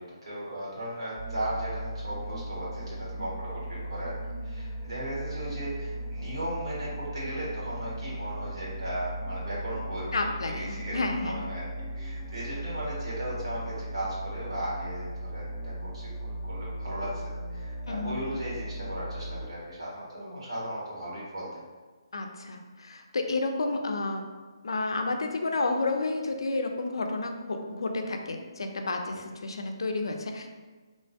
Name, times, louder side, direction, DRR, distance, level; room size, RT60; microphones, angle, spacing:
voice 1, 0.0-4.2 4.4-10.2 10.4-16.1 16.4-17.2 17.5-21.5 29.1-29.2, right 1 dB, 80° right, -7 dB, 1.4 m, -36 dB
sound 1, 1.2-19.5, right 1 dB, 15° right, 0.5 m, -37 dB
voice 2, 10.1-11.5 17.8-18.2 22.1-24.2 24.6-30.5, left 3 dB, 75° left, 4 dB, 0.3 m, -31 dB
3.0 x 2.2 x 2.7 m, 1.4 s
hypercardioid pair, 150°, 3 cm